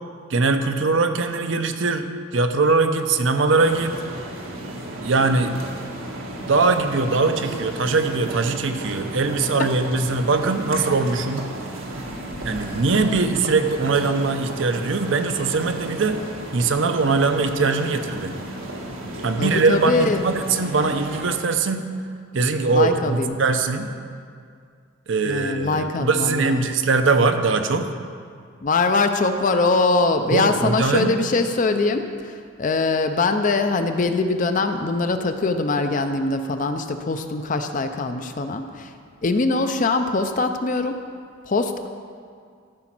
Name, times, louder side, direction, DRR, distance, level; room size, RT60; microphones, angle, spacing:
voice 1, 0.3-4.0 5.0-5.7 6.5-11.5 12.4-16.2 16.5-18.3 19.2-21.9 22.3-23.9 25.1-27.9 30.3-31.2, right 3 dB, 65° right, 7 dB, 0.7 m, -21 dB
sound 1, 3.6-21.2, right 1 dB, 90° right, 1.6 m, -34 dB
voice 2, 19.4-20.2 22.7-23.3 25.3-26.7 28.6-38.9 39.2-41.0 41.5-41.9, left 3 dB, 40° left, 8 dB, 0.5 m, -22 dB
13.5 x 5.0 x 6.0 m, 2.2 s
head